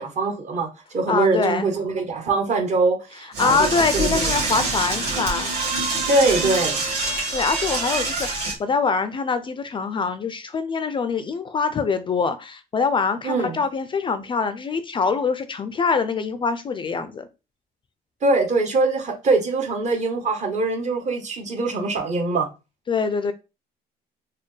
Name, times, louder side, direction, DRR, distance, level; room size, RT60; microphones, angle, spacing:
voice 1, 0.0-4.3 6.1-6.8 13.2-13.6 18.2-22.5, right 3 dB, 45° right, 1.0 m, -23 dB
voice 2, 1.1-1.7 3.4-5.6 7.3-17.3 22.9-23.3, left 5 dB, 30° left, 0.3 m, -24 dB
Door / Toilet flush, 3.3-8.5, right 3 dB, 80° right, 1.7 m, -25 dB
4.1 x 2.1 x 3.2 m
cardioid pair, 110°, 17 cm